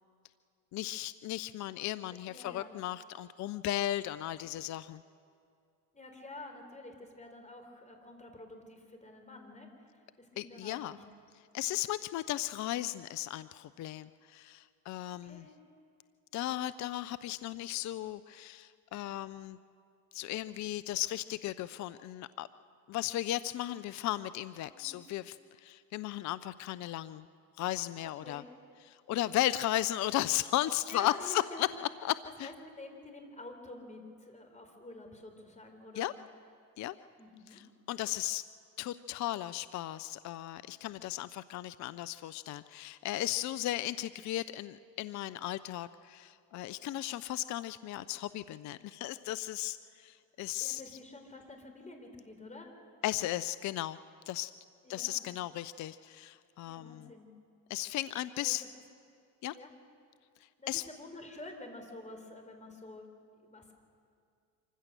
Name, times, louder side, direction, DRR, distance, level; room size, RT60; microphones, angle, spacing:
voice 1, 0.7-5.0 10.4-11.0 11.5-15.5 16.3-19.6 20.1-22.5 22.9-27.3 27.6-28.4 28.9-31.7 32.0-32.5 36.0-36.1 36.8-36.9 37.5-38.4 38.8-50.8 53.0-54.0 54.3-54.5 54.9-57.1 57.7-58.6 59.4-59.6 60.7-60.8, left 14 dB, 35° left, 15 dB, 0.5 m, -35 dB
voice 2, 2.3-2.7 5.9-11.0 15.1-15.5 24.7-25.0 28.2-28.5 30.9-31.7 32.4-36.1 37.2-37.6 50.6-52.7 54.8-55.2 56.6-57.3 58.4-58.5 59.5-59.7 60.6-63.1 63.4-63.7, left 2 dB, 15° left, 4 dB, 3.9 m, -49 dB
26.0 x 15.5 x 6.6 m, 2.3 s
hypercardioid pair, 75°, 49 cm